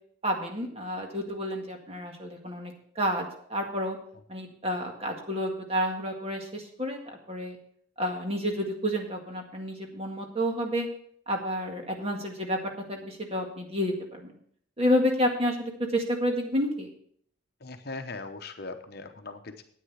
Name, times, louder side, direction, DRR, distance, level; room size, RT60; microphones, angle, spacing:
voice 1, 0.2-4.0 4.3-7.0 7.3-7.6 8.0-10.9 11.3-12.6 12.9-14.3 14.8-16.9, equal, 30° right, 2 dB, 1.8 m, -30 dB
voice 2, 17.6-19.6, left 3 dB, 50° left, 7 dB, 0.9 m, -39 dB
9.7 x 9.0 x 5.7 m, 0.62 s
head